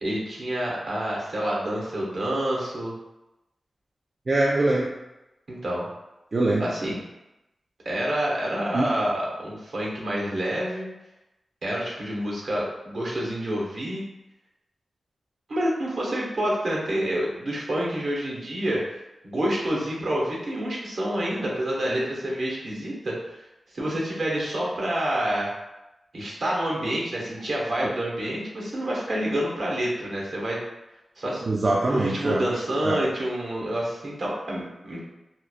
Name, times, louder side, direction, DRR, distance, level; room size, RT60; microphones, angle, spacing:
voice 1, 0.0-2.9 5.5-5.9 6.6-7.0 7.8-10.9 11.6-14.0 15.5-18.8 19.2-23.4 23.7-25.5 26.1-30.6 31.2-31.4 31.9-35.0, right 1 dB, 70° right, -3 dB, 0.8 m, -28 dB
voice 2, 4.3-4.9 6.3-6.6 8.7-8.9 31.5-32.4 32.8-33.0, right 2 dB, 50° right, -3 dB, 0.3 m, -23 dB
2.9 x 2.0 x 2.3 m, 0.96 s
cardioid pair, 60°, 0 cm